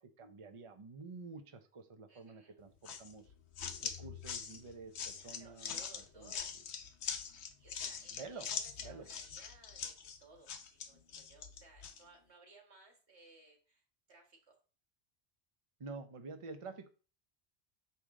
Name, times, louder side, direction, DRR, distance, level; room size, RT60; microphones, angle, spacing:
voice 1, 0.0-3.3 3.8-5.7 6.1-6.3 8.1-8.5 8.8-9.1 15.8-16.9, right 4 dB, 35° right, 8 dB, 0.7 m, -49 dB
voice 2, 2.1-2.6 5.1-6.9 7.6-9.9 10.2-13.8 14.1-14.6, right 2 dB, 90° right, 2 dB, 1.9 m, -61 dB
sound 1, 2.8-12.0, left 7 dB, 80° left, 1.0 m, -43 dB
7.0 x 4.9 x 3.7 m, 0.36 s
omnidirectional pair, 1.1 m